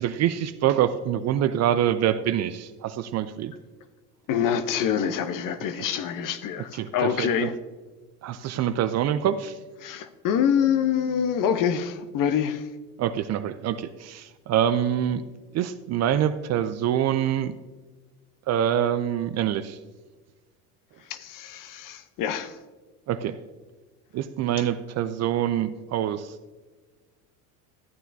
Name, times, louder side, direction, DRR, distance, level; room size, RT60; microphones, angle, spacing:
voice 1, 0.0-3.5 6.7-7.5 8.2-9.6 13.0-15.2 15.5-17.5 18.5-19.8 23.1-23.4 24.1-26.3, right 10 dB, 35° right, 0.5 m, -25 dB
voice 2, 4.3-7.5 9.8-12.7 21.1-22.6, left 8 dB, 45° left, 0.8 m, -26 dB
13.5 x 9.0 x 2.7 m
hypercardioid pair, 75°, 46 cm